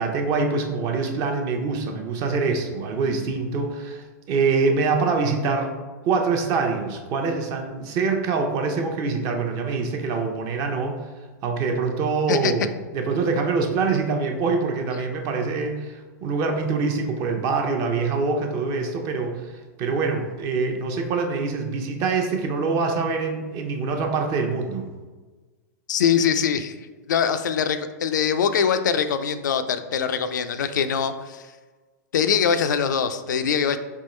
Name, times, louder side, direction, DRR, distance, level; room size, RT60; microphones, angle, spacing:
voice 1, 0.0-5.7 6.0-11.0 11.4-24.9, right 4 dB, 40° right, 3 dB, 0.7 m, -25 dB
voice 2, 25.9-26.7 27.1-31.5 32.1-33.8, left 7 dB, 90° left, 9 dB, 0.4 m, -23 dB
3.6 x 3.0 x 4.2 m, 1.3 s
hypercardioid pair, 135°, 10 cm